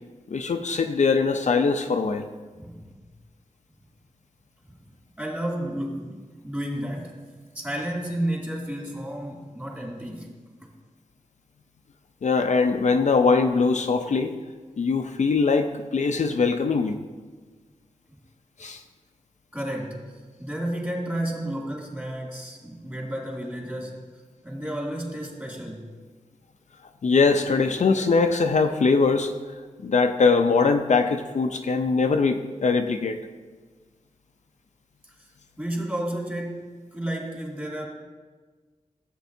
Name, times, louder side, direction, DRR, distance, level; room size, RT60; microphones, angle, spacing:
voice 1, 0.3-2.3 12.2-14.4 14.8-17.0 18.6-18.8 27.0-29.3 29.8-33.2, left 4 dB, 65° left, 5 dB, 0.6 m, -22 dB
voice 2, 2.5-2.9 4.7-4.8 5.2-7.2 7.5-10.7 19.5-24.1 24.4-25.9 35.0-35.3 35.6-37.9, right 1 dB, 15° right, -2 dB, 2.5 m, -32 dB
14.5 x 8.2 x 2.7 m, 1.4 s
wide cardioid pair, 80°, 13 cm